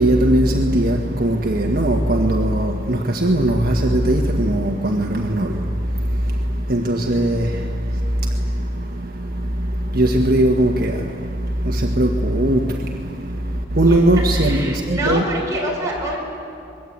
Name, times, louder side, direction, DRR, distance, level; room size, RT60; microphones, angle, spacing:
voice 1, 0.0-15.2, right 1 dB, 50° right, 1.5 m, -19 dB
voice 2, 13.8-16.2, right 1 dB, 15° right, 5.9 m, -26 dB
25.5 x 22.0 x 8.7 m
head